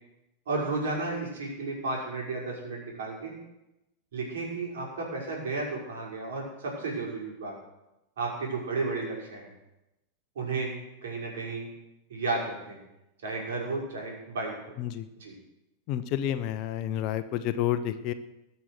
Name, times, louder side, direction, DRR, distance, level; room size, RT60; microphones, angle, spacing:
voice 1, 0.5-3.3 4.1-7.5 8.2-9.5 10.4-10.7 11.0-11.7 12.1-12.8 13.2-14.5 15.2-15.3, right 3 dB, 60° right, -2 dB, 5.7 m, -33 dB
voice 2, 15.9-18.1, left 11 dB, 40° left, 11 dB, 0.9 m, -30 dB
20.5 x 7.1 x 6.4 m, 0.93 s
figure-of-eight pair, 90°, 0 cm